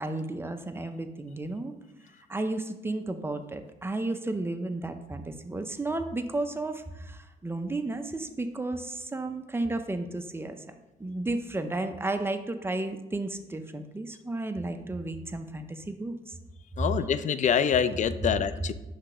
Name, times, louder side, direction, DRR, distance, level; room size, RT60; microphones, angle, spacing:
voice 1, 0.0-1.7 2.3-16.4 17.0-17.1, right 2 dB, 15° right, 7 dB, 0.5 m, -33 dB
voice 2, 16.8-18.7, left 7 dB, 45° left, 13 dB, 0.4 m, -25 dB
5.9 x 3.3 x 4.9 m, 0.97 s
cardioid pair, 95°, 18 cm